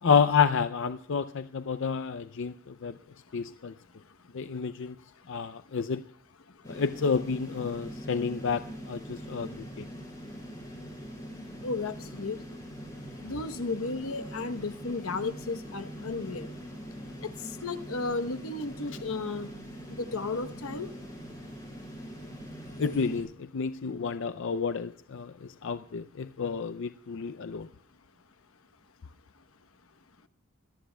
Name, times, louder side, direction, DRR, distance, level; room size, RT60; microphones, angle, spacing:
voice 1, 0.0-3.0 3.3-3.7 4.3-5.0 5.3-6.0 6.7-9.9 22.8-27.7, left 6 dB, 60° left, 12 dB, 0.5 m, -29 dB
sound 1, 6.6-23.2, equal, 15° left, 7.7 m, -43 dB
voice 2, 11.6-12.4 13.2-16.5 17.2-17.3 17.6-19.5 19.9-20.9, left 3 dB, 85° left, 10 dB, 1.0 m, -34 dB
25.5 x 17.5 x 2.3 m, 0.63 s
head